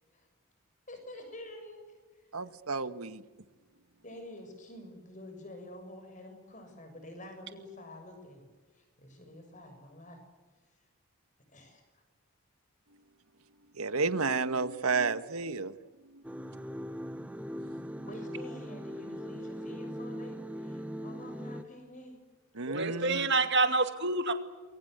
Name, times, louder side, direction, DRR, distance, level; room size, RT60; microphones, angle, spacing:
voice 1, 0.9-1.9 4.0-8.5 8.8-10.2 11.5-12.0 18.0-22.2, left 1 dB, 35° left, 6.9 m, -48 dB
voice 2, 2.3-3.2 13.8-15.8 16.1-16.2 22.5-23.3, right 4 dB, 80° right, 1.4 m, -31 dB
sound 1, 16.2-21.6, equal, 5° right, 1.0 m, -40 dB
voice 3, 22.6-24.3, right 3 dB, 55° right, 2.4 m, -27 dB
29.0 x 23.0 x 7.9 m
head